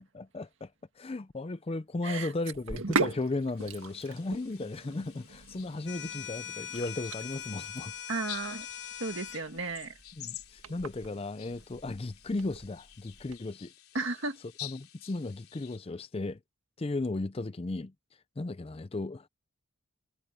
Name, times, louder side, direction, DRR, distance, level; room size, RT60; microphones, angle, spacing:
voice 1, 0.1-0.7 1.0-7.9 10.2-13.7 14.6-16.4 16.8-17.9 18.4-19.3, left 2 dB, 25° left, 0.4 m, -35 dB
Sink (filling or washing), 2.5-13.4, right 3 dB, 80° right, 1.6 m, -39 dB
sound 1, 3.6-15.8, left 14 dB, 85° left, 3.4 m, -50 dB
sound 2, 5.9-9.4, left 9 dB, 55° left, 1.3 m, -41 dB
voice 2, 8.1-8.7 9.0-9.9 13.9-14.4, right 3 dB, 60° right, 2.0 m, -34 dB
head